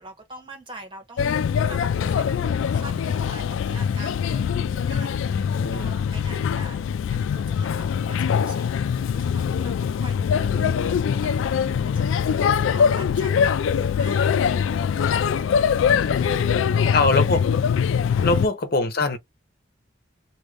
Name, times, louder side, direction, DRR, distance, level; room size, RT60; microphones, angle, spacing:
voice 1, 0.0-6.8 7.0-15.4 15.8-17.0 18.1-18.4, right 2 dB, 25° right, 1.2 m, -44 dB
Male speech man speaking / Child speech kid speaking / Chatter, 1.2-18.5, left 7 dB, 85° left, 0.3 m, -23 dB
voice 2, 5.3-5.9 10.4-11.0 15.7-16.3 16.9-17.5 18.2-19.2, left 3 dB, 50° left, 0.8 m, -24 dB
2.7 x 2.5 x 3.1 m
head